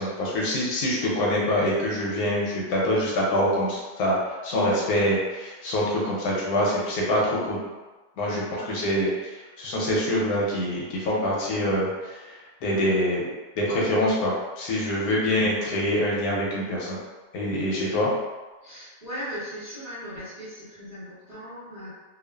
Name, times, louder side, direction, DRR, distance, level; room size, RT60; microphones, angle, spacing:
voice 1, 0.0-7.6 8.2-13.2 13.6-17.0 17.3-18.1, left 1 dB, 70° left, -4 dB, 1.0 m, -25 dB
voice 2, 8.2-8.8 15.0-15.4 17.7-18.1 18.6-21.9, equal, 40° right, -13 dB, 0.6 m, -39 dB
2.6 x 2.4 x 2.2 m, 1.2 s
omnidirectional pair, 1.8 m